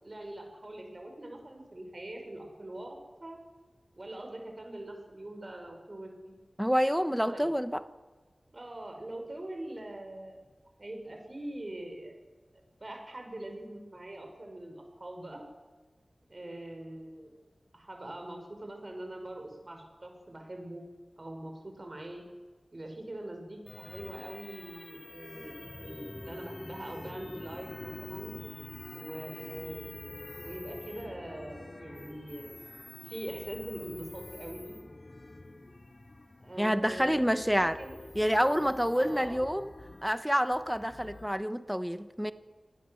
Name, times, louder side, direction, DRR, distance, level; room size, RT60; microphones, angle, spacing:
voice 1, 0.0-3.4 4.0-6.3 7.3-7.5 8.5-10.4 10.8-12.1 12.8-15.5 16.3-17.4 17.7-20.8 21.2-22.2 22.7-28.3 28.9-29.9 30.4-32.6 33.0-34.7 36.4-38.0 38.9-39.4, right 1 dB, 40° right, 5.6 m, -43 dB
voice 2, 6.6-7.8 36.6-37.8 38.1-39.7 40.0-42.3, equal, ahead, 1.1 m, -28 dB
sound 1, 23.7-41.3, left 2 dB, 45° left, 2.6 m, -46 dB
26.0 x 18.5 x 7.8 m
wide cardioid pair, 80°, 0 cm